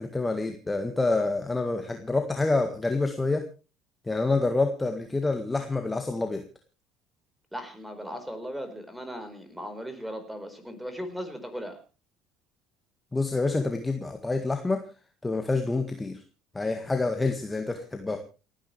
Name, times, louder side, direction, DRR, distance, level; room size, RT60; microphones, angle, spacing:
voice 1, 0.0-3.4 4.1-6.4 13.1-14.8 15.2-16.2 16.5-18.2, left 3 dB, 15° left, 6 dB, 1.8 m, -27 dB
voice 2, 7.5-11.8, equal, 5° right, 8 dB, 4.6 m, -37 dB
29.5 x 10.0 x 3.4 m, 0.34 s
figure-of-eight pair, 60°, 0 cm